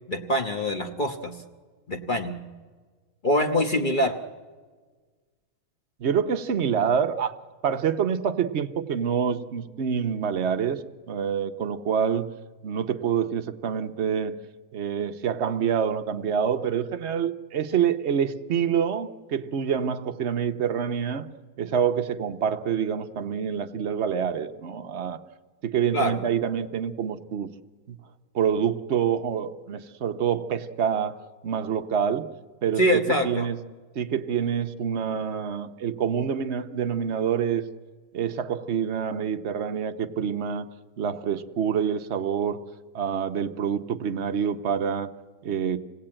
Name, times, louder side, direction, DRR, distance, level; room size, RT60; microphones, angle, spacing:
voice 1, 0.1-1.4 1.9-2.4 3.2-4.2 25.9-26.2 32.8-33.5, equal, 30° left, 5 dB, 1.0 m, -24 dB
voice 2, 6.0-7.3 7.6-10.8 11.1-12.3 12.6-14.3 14.7-21.3 21.6-25.2 25.6-27.5 27.9-28.0 28.3-31.2 31.4-32.2 32.6-32.8 33.1-33.6 33.9-37.6 38.1-40.7 41.0-42.6 42.9-45.1 45.4-45.8, right 7 dB, 55° right, 7 dB, 0.7 m, -26 dB
26.5 x 17.5 x 8.8 m, 1.4 s
omnidirectional pair, 2.2 m